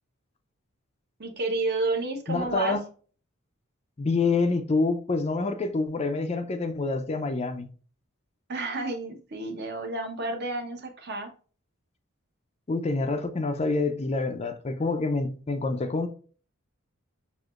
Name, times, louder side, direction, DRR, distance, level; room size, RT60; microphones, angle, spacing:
voice 1, 1.2-2.8 8.5-11.3, right 2 dB, 50° right, 0.9 m, -30 dB
voice 2, 2.3-2.8 4.0-7.7 12.7-16.1, left 3 dB, 30° left, 0.4 m, -27 dB
6.2 x 2.8 x 2.4 m
head